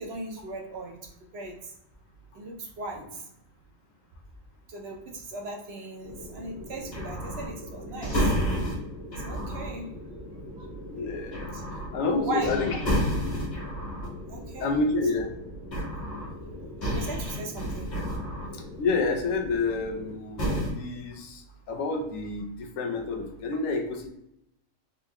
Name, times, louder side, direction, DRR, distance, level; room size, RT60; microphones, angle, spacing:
voice 1, 0.0-1.7 2.3-3.3 4.7-8.3 9.1-9.9 10.6-10.7 11.5-11.6 12.2-12.6 14.3-14.7 16.4-17.9, right 2 dB, 60° right, 1 dB, 0.8 m, -38 dB
sound 1, 6.0-20.1 20.4-20.7, equal, 60° left, 1.6 m, -32 dB
voice 2, 10.9-12.8 14.6-15.3 18.8-24.1, left 3 dB, 85° left, 3 dB, 1.0 m, -29 dB
3.8 x 2.5 x 2.8 m, 0.81 s
omnidirectional pair, 1.3 m